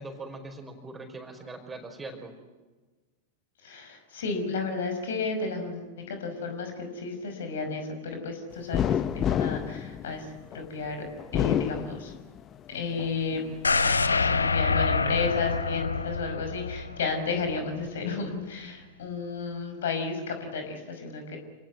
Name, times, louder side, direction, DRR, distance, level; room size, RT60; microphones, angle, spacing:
voice 1, 0.0-2.3, right 2 dB, 15° right, 5 dB, 4.9 m, -41 dB
voice 2, 3.6-11.1 11.3-12.1 12.7-13.5 13.8-21.4, left 4 dB, 60° left, 6 dB, 5.6 m, -33 dB
sound 1, 8.7-10.6 11.2-12.5 13.0-13.9, left 9 dB, 30° left, 0.9 m, -29 dB
sound 2, 13.6-17.6 18.0-18.1, left 4 dB, 75° left, 1.1 m, -26 dB
28.0 x 19.5 x 9.5 m, 1.3 s
figure-of-eight pair, 90°, 0 cm